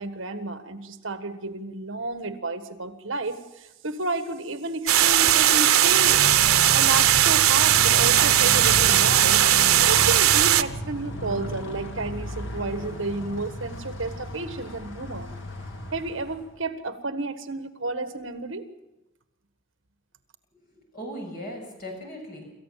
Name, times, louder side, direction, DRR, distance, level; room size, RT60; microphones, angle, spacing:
voice 1, 0.0-6.2 6.7-9.4 9.9-15.3 15.9-18.7, right 2 dB, 65° right, 9 dB, 1.5 m, -31 dB
sound 1, 4.9-10.6, right 12 dB, 90° right, 0.8 m, -18 dB
Motorcycle, 5.9-16.6, left 1 dB, 60° left, 2.0 m, -34 dB
voice 2, 20.7-22.5, equal, 45° left, 1 dB, 6.9 m, -38 dB
27.0 x 14.5 x 7.5 m, 0.97 s
head